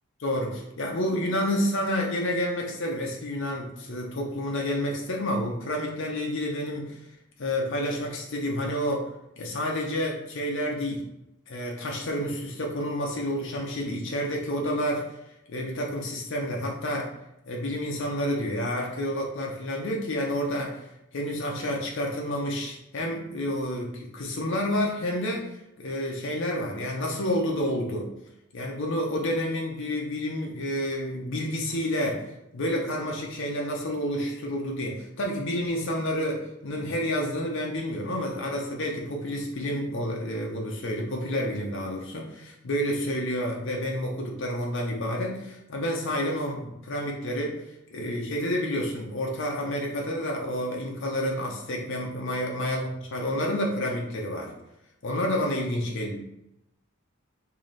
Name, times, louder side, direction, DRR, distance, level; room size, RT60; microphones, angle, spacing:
voice 1, 0.2-7.0 7.4-9.1 9.4-11.0 11.5-15.2 15.5-17.1 17.5-20.8 21.1-28.1 28.5-32.2 32.5-47.6 47.9-54.5 55.0-56.2, equal, 60° left, -1 dB, 0.6 m, -29 dB
3.2 x 2.7 x 4.0 m, 0.86 s
head